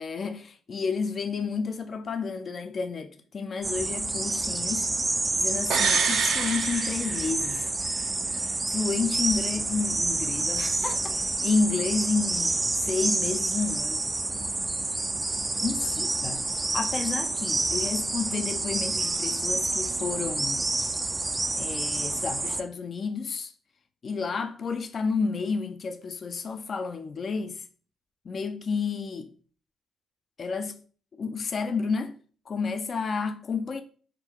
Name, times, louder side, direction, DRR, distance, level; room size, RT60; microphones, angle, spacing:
voice 1, 0.0-4.9 5.4-7.7 8.7-14.0 15.6-16.5 16.7-20.6 21.6-23.5 24.0-27.6 28.3-29.3 30.4-30.8 31.2-32.1 32.5-33.8, left 4 dB, 45° left, 0.4 m, -31 dB
sound 1, 3.6-22.6, right 2 dB, 20° right, 0.3 m, -28 dB
sound 2, 5.7-7.6 7.9-8.0, right 6 dB, 70° right, 0.5 m, -27 dB
3.7 x 2.2 x 4.4 m
cardioid pair, 90°, 0 cm